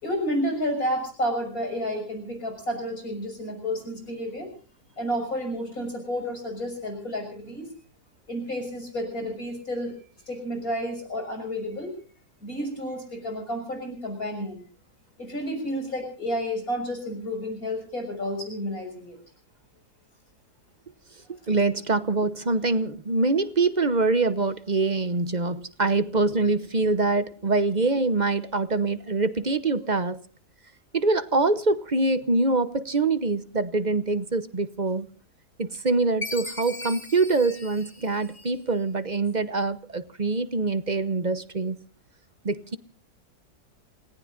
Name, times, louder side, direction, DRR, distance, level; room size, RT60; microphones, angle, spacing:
voice 1, 0.0-4.5 5.0-7.7 8.3-9.9 10.3-11.9 12.4-14.6 15.2-19.2, equal, 60° left, 6.9 m, -31 dB
voice 2, 21.3-30.2 30.9-35.1 35.6-41.8 42.4-42.8, right 3 dB, 35° right, 0.9 m, -24 dB
Chime, 36.2-38.8, left 3 dB, 35° left, 2.8 m, -38 dB
29.0 x 18.5 x 2.6 m
omnidirectional pair, 1.7 m